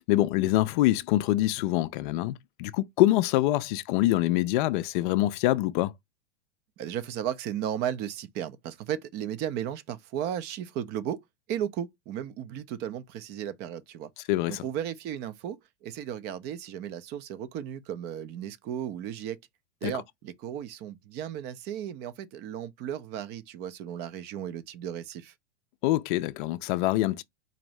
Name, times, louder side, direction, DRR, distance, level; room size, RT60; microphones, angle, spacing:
voice 1, 0.0-5.9 14.3-14.6 19.8-19.9 25.8-27.2, left 16 dB, 50° left, 0.4 m, -25 dB
voice 2, 6.8-11.2 11.5-14.1 14.5-19.4 19.8-25.3, right 10 dB, 30° right, 0.4 m, -35 dB
4.0 x 2.5 x 3.1 m
hypercardioid pair, 105°, 34 cm